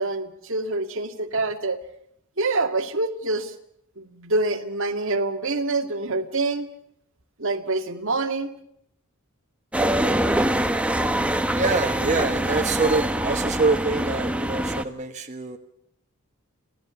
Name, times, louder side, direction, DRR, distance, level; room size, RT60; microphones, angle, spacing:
voice 1, 0.0-1.8 2.4-3.5 4.0-6.7 7.4-8.5, right 2 dB, 60° right, 5 dB, 2.2 m, -26 dB
sound 1, 9.7-14.8, right 1 dB, 5° right, 1.1 m, -24 dB
voice 2, 11.5-15.6, right 3 dB, 35° right, 3 dB, 1.3 m, -25 dB
27.5 x 17.0 x 7.0 m, 0.75 s
head